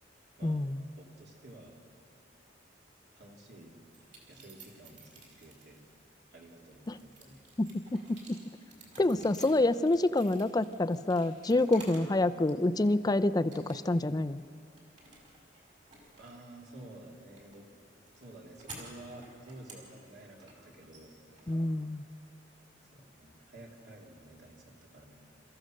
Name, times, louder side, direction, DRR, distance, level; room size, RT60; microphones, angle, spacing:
voice 1, 0.4-0.8 6.9-7.0 7.6-8.4 9.0-14.4 21.5-22.0, left 2 dB, 20° left, 12 dB, 0.4 m, -27 dB
voice 2, 1.0-1.8 3.1-3.7 4.3-5.8 6.3-7.5 8.9-9.3 16.2-17.7 18.2-21.2 22.1-22.2 22.9-25.2, right 1 dB, 65° right, -1 dB, 3.0 m, -51 dB
sound 1, 3.9-5.9 6.4-12.2 12.5-13.1 13.5-14.1 14.4-22.3, right 2 dB, 40° right, 4.7 m, -53 dB
27.5 x 14.5 x 6.5 m, 2.3 s
head